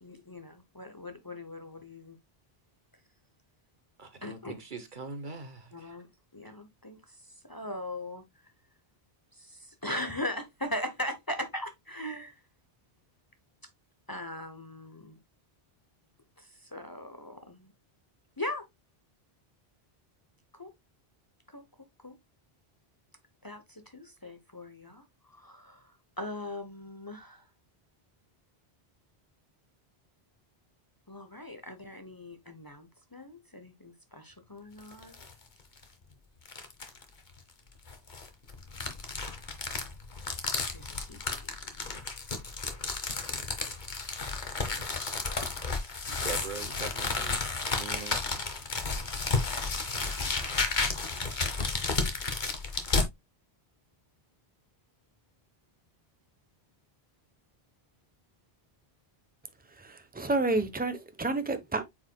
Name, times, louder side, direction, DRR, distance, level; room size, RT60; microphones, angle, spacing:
voice 1, 0.0-2.2 4.2-4.5 5.7-6.1 6.3-7.1 7.4-8.2 9.4-12.3 14.1-15.2 16.4-17.7 18.4-18.6 20.5-20.7 21.5-21.6 22.0-22.2 23.4-27.4 31.1-35.2 40.7-42.0, left 1 dB, 20° left, 0.9 m, -40 dB
voice 2, 4.0-6.0 46.2-47.4 47.7-48.4, right 4 dB, 50° right, 1.2 m, -42 dB
sound 1, 34.8-35.3 35.8-35.9 36.4-37.0 37.9-53.1, left 4 dB, 50° left, 1.4 m, -32 dB
voice 3, 59.7-61.8, right 2 dB, 10° right, 0.9 m, -30 dB
8.5 x 4.9 x 2.3 m
omnidirectional pair, 1.0 m